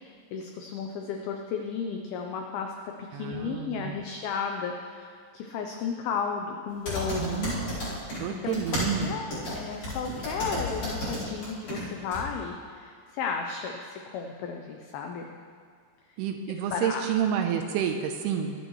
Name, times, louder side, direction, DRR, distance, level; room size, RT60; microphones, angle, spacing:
voice 1, 0.0-7.5 8.3-8.6 9.0-15.3 16.7-17.0, left 6 dB, 85° left, 3 dB, 2.2 m, -34 dB
voice 2, 3.1-4.0 7.2-7.8 8.2-9.2 16.2-18.6, right 8 dB, 80° right, 4 dB, 2.4 m, -29 dB
sound 1, 6.9-8.2 8.5-11.8 12.1-12.2, left 1 dB, 30° left, 4.3 m, -32 dB
22.5 x 9.0 x 3.1 m, 2.2 s
omnidirectional pair, 5.2 m